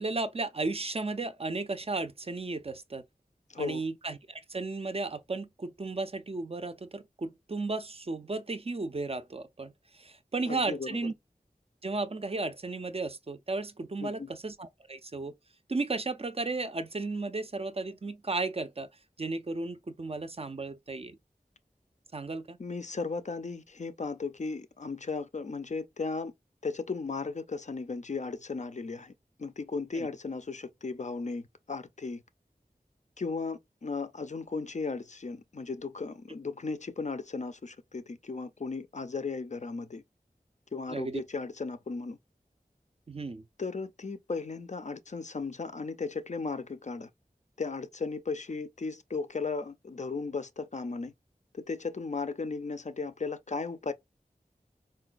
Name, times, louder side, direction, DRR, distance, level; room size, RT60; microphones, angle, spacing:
voice 1, 0.0-3.0 3.6-11.1 11.8-15.3 15.7-18.9 19.2-21.2 22.1-22.6 29.9-30.1 40.9-41.2 43.1-43.4, right 3 dB, 40° right, 0.4 m, -34 dB
voice 2, 10.5-10.9 14.0-14.3 22.6-26.3 26.6-29.1 29.4-32.2 33.2-40.0 40.7-42.2 43.6-47.1 47.6-51.1 51.5-53.9, left 4 dB, 50° left, 0.4 m, -36 dB
3.8 x 2.2 x 2.4 m
wide cardioid pair, 45°, 16 cm